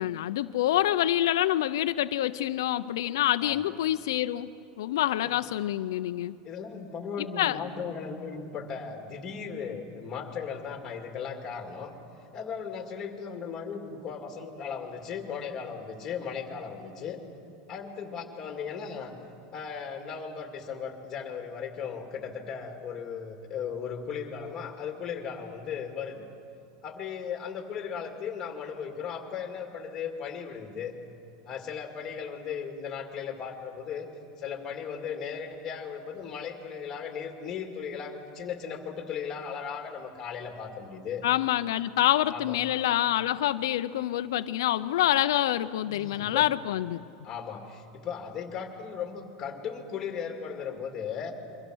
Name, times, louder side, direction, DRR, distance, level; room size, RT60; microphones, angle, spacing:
voice 1, 0.0-4.5 4.8-6.4 7.4-7.6 41.2-47.0, left 13 dB, 85° left, 10 dB, 0.5 m, -26 dB
voice 2, 6.4-11.9 12.3-17.2 17.7-19.2 19.5-26.3 26.8-31.0 31.5-34.1 34.4-41.2 42.3-42.6 45.8-46.5 47.2-51.4, left 6 dB, 20° left, 4 dB, 2.2 m, -37 dB
28.0 x 23.5 x 6.3 m, 2.7 s
supercardioid pair, 175°, 2 cm